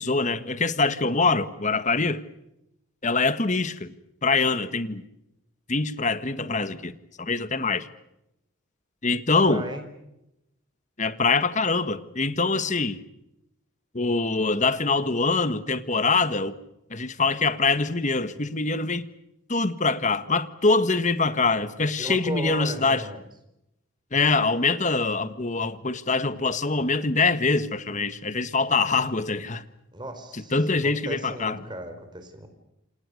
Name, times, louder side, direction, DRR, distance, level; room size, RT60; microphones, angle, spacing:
voice 1, 0.0-2.2 3.0-3.9 4.2-5.0 5.7-7.9 9.0-9.6 11.0-13.0 13.9-16.6 16.9-19.1 19.5-23.0 24.1-29.6 30.3-31.6, left 3 dB, 35° left, 12 dB, 1.6 m, -24 dB
voice 2, 9.5-9.8 22.0-23.2 29.9-32.5, right 1 dB, 20° right, 8 dB, 4.5 m, -36 dB
28.5 x 27.5 x 6.6 m, 0.87 s
head